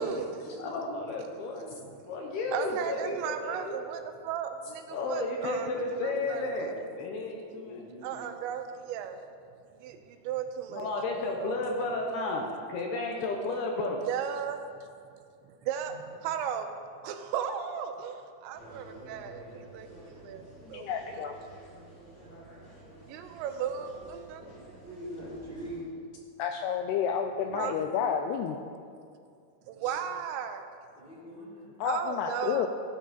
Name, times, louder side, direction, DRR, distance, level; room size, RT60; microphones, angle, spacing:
voice 1, 0.0-0.6 1.8-2.0 2.5-6.4 6.7-6.9 8.0-9.2 9.8-10.9 11.4-11.6 14.1-14.9 15.6-15.9 16.2-16.7 17.0-21.2 23.1-24.4 27.5-27.8 29.7-30.7 31.8-32.7, right 8 dB, 85° right, 7 dB, 3.0 m, -36 dB
voice 2, 0.6-3.8 4.9-6.7 7.0-7.8 10.7-14.0, left 2 dB, 75° left, 1 dB, 2.6 m, -33 dB
voice 3, 3.0-3.5 5.7-7.0 7.5-8.2 10.1-10.2 15.9-16.0 21.8-22.2 22.5-22.6 23.2-23.3 24.7-26.0 27.4-28.1 29.8-30.0 30.9-31.7, equal, 15° right, -9 dB, 2.9 m, -45 dB
sound 1, 18.5-25.8, right 1 dB, 30° left, 3.3 m, -50 dB
voice 4, 20.7-21.4 26.4-28.6 31.8-32.7, left 8 dB, 90° left, 5 dB, 2.3 m, -30 dB
15.5 x 9.2 x 4.2 m, 2.3 s
omnidirectional pair, 5.2 m